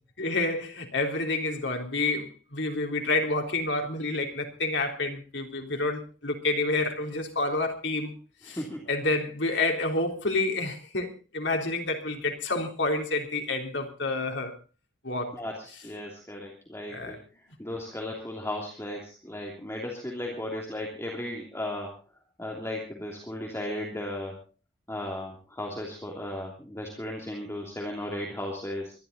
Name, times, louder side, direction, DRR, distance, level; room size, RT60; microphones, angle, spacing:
voice 1, 0.2-8.1 8.4-8.6 8.9-14.5 15.0-15.4 16.9-17.2, left 2 dB, 70° left, 3.5 m, -29 dB
voice 2, 8.4-8.8 15.3-17.2 17.6-21.9 22.4-24.4 24.9-28.9, left 1 dB, 15° left, 3.0 m, -35 dB
24.0 x 12.0 x 4.0 m
head